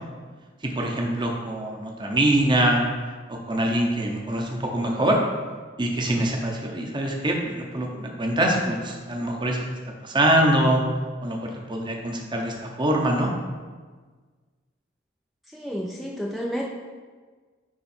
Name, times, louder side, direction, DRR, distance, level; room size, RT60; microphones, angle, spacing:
voice 1, 0.6-2.9 3.3-5.2 5.8-9.7 10.0-10.8 11.2-13.3, right 1 dB, 25° right, 1 dB, 0.9 m, -24 dB
voice 2, 15.5-16.6, equal, ahead, -2 dB, 0.5 m, -30 dB
9.7 x 3.8 x 4.4 m, 1.5 s
head